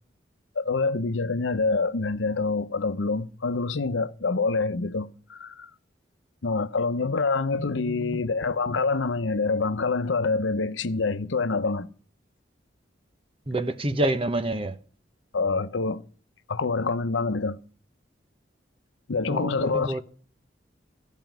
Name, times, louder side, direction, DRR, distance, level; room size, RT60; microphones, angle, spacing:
voice 1, 0.6-5.7 6.4-11.9 15.3-16.0 16.5-17.6 19.1-20.0, left 4 dB, 90° left, 0.8 m, -26 dB
voice 2, 7.7-8.2 13.5-14.7 19.3-20.0, right 1 dB, 30° right, 1.0 m, -28 dB
15.0 x 5.3 x 9.1 m
head